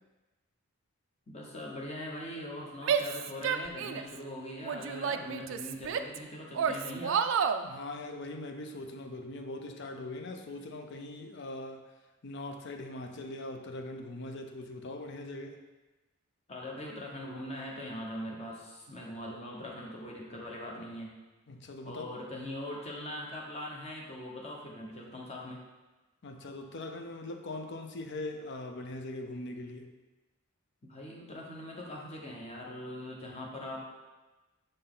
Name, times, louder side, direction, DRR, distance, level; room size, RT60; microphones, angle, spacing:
voice 1, 1.3-7.2 16.5-21.2 21.8-25.6 30.8-33.8, left 1 dB, 30° left, -2 dB, 1.0 m, -41 dB
Female speech woman speaking / Yell, 2.8-4.2 4.6-6.2 6.5-7.6, right 7 dB, 60° right, 0.3 m, -30 dB
voice 2, 7.6-11.9 12.2-15.6 21.5-22.1 26.2-29.9, left 2 dB, 55° left, 5 dB, 0.6 m, -41 dB
6.5 x 4.2 x 3.8 m, 1.2 s
head